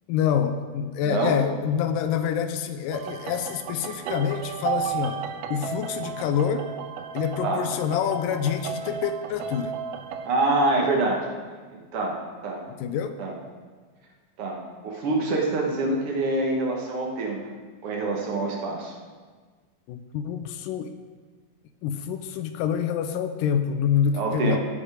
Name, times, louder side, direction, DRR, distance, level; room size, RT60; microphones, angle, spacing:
voice 1, 0.1-5.2 5.5-6.7 7.1-9.8 12.8-13.1 19.9-20.9 21.8-24.6, left 8 dB, 85° left, 9 dB, 2.2 m, -26 dB
voice 2, 1.0-1.4 7.4-7.6 10.2-11.3 11.7-12.6 13.2-13.3 14.4-17.4 17.8-18.9 24.1-24.6, right 2 dB, 55° right, -1 dB, 1.8 m, -26 dB
sound 1, 2.9-10.3, right 8 dB, 85° right, 2.2 m, -34 dB
16.0 x 5.3 x 4.9 m, 1.5 s
omnidirectional pair, 3.8 m